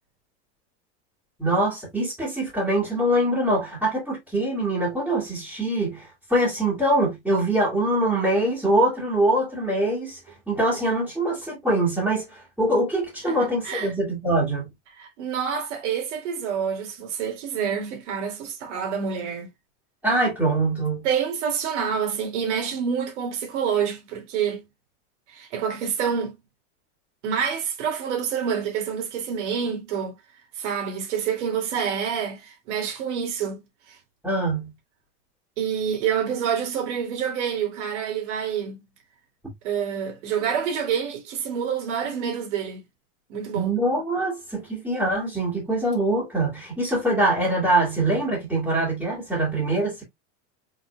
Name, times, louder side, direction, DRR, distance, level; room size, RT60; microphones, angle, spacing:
voice 1, 1.4-10.2 10.5-14.7 20.0-21.1 34.2-34.7 43.5-50.0, right 1 dB, 5° right, 2.2 m, -23 dB
voice 2, 13.3-13.9 15.0-19.5 21.0-24.6 25.3-26.3 27.2-30.2 30.6-33.6 33.9-34.0 35.6-38.8 39.6-42.8 43.3-43.7, right 7 dB, 80° right, 2.5 m, -27 dB
5.0 x 4.1 x 2.3 m
supercardioid pair, 155°, 35 cm